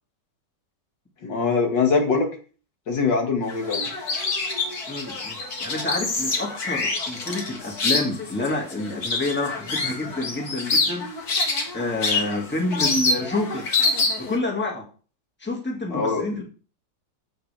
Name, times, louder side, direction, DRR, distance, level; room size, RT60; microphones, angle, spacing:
voice 1, 1.2-2.3 2.9-3.9 15.9-16.2, left 4 dB, 80° left, 2 dB, 2.6 m, -22 dB
sound 1, 3.5-14.4, left 3 dB, 60° left, 2.3 m, -26 dB
voice 2, 4.9-11.1 11.7-13.7 14.2-14.9 15.4-16.4, left 2 dB, 5° left, 0 dB, 1.9 m, -28 dB
15.0 x 6.1 x 3.4 m, 0.38 s
omnidirectional pair, 1.9 m